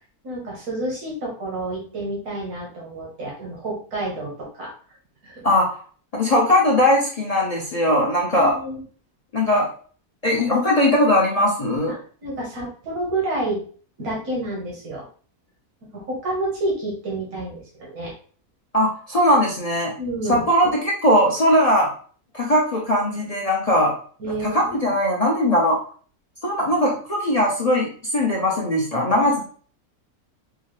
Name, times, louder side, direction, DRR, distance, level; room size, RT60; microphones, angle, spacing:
voice 1, 0.2-4.7 5.2-5.5 8.3-8.8 11.9-13.6 14.0-15.1 15.9-18.1 20.0-20.4 24.2-24.9 29.2-29.4, right 1 dB, 85° right, -4 dB, 1.8 m, -29 dB
voice 2, 5.4-5.8 6.1-8.6 9.3-9.7 10.2-12.0 18.7-19.9 20.3-21.9 22.3-23.9 24.4-25.8 26.4-29.4, left 1 dB, 45° left, -2 dB, 0.5 m, -19 dB
4.7 x 2.2 x 3.1 m, 0.44 s
omnidirectional pair, 1.6 m